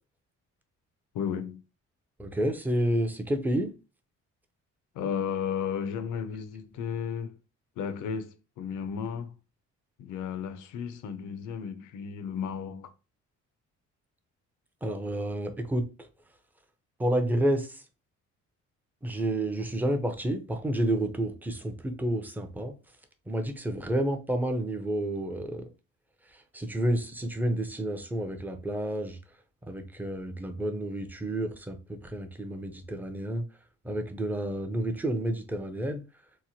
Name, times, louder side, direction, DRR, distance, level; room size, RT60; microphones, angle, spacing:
voice 1, 1.1-1.6 4.9-7.4 7.8-9.3 10.0-12.9, left 7 dB, 80° left, 0.5 m, -34 dB
voice 2, 2.2-3.7 14.8-15.9 17.0-17.8 19.0-22.8 23.3-25.7 26.5-29.2 29.7-33.4 33.8-36.0, right 1 dB, 5° right, 0.5 m, -30 dB
2.9 x 2.1 x 2.7 m
cardioid pair, 90°, 30 cm